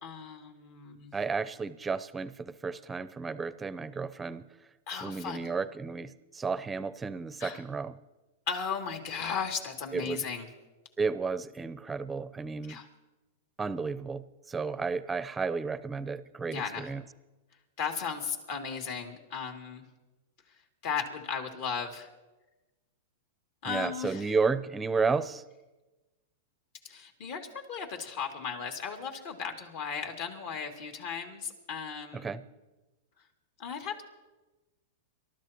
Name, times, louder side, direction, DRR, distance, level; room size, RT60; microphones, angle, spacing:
voice 1, 0.0-1.1 4.9-5.4 7.4-7.6 8.5-10.5 12.7-12.9 16.5-16.9 17.8-19.8 20.5-20.6 20.8-22.1 23.6-24.3 26.8-32.4 33.6-34.0, left 6 dB, 55° left, 3 dB, 2.6 m, -36 dB
voice 2, 1.1-4.5 5.0-8.0 9.9-10.3 11.0-12.8 13.6-17.0 23.7-25.4 32.1-32.4, right 4 dB, 15° right, 15 dB, 0.6 m, -32 dB
27.0 x 13.0 x 3.0 m, 1.1 s
hypercardioid pair, 130°, 0 cm